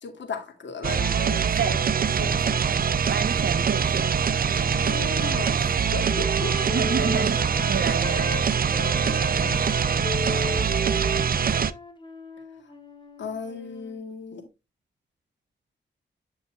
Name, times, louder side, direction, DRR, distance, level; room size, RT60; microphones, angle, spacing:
voice 1, 0.0-2.6 4.6-6.6 8.8-9.6 13.2-14.5, left 4 dB, 85° left, 2.2 m, -36 dB
sound 1, 0.8-11.7, right 7 dB, 55° right, 0.5 m, -24 dB
voice 2, 3.1-4.1 6.7-7.4 7.7-8.4, right 7 dB, 80° right, 1.1 m, -29 dB
Wind instrument woodwind instrument, 3.5-8.4 8.7-14.0, left 1 dB, 25° left, 1.7 m, -36 dB
9.6 x 5.6 x 2.4 m
cardioid pair, 80°, 18 cm